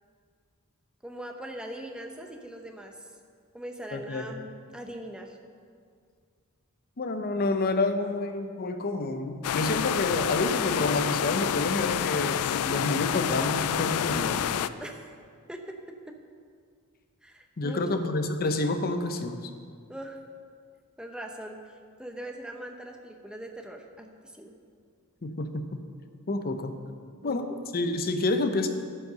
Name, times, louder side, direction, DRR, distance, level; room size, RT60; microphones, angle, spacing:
voice 1, 1.0-2.9 3.5-5.4 14.8-15.0 15.5-16.1 17.2-18.0 19.9-20.2 21.0-21.6 22.0-24.5 27.2-27.5, right 1 dB, 5° right, 3 dB, 0.7 m, -41 dB
voice 2, 3.9-4.2 7.0-14.5 17.6-19.5 25.2-25.7 26.3-26.7 27.2-28.7, left 2 dB, 45° left, 8 dB, 0.7 m, -29 dB
Between Two Rapids, 9.4-14.7, left 9 dB, 80° left, 0.3 m, -28 dB
11.0 x 5.5 x 6.7 m, 2.1 s
head